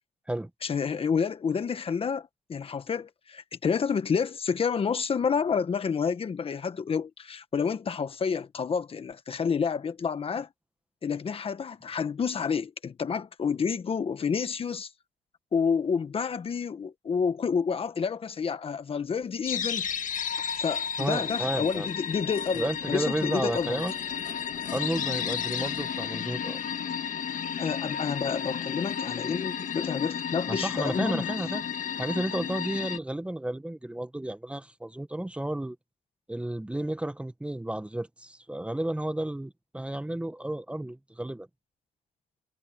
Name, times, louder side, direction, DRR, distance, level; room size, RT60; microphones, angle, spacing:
voice 1, 0.6-10.5 11.0-14.9 15.5-19.9 20.6-23.8 27.6-31.3, left 6 dB, 35° left, 1.5 m, -29 dB
sound 1, 19.5-33.0, left 7 dB, 50° left, 1.9 m, -33 dB
voice 2, 21.0-21.9 22.5-23.9 24.7-26.6 30.5-31.6 32.0-35.8 36.3-41.5, right 1 dB, 5° right, 1.4 m, -32 dB
cardioid pair, 110°, 17 cm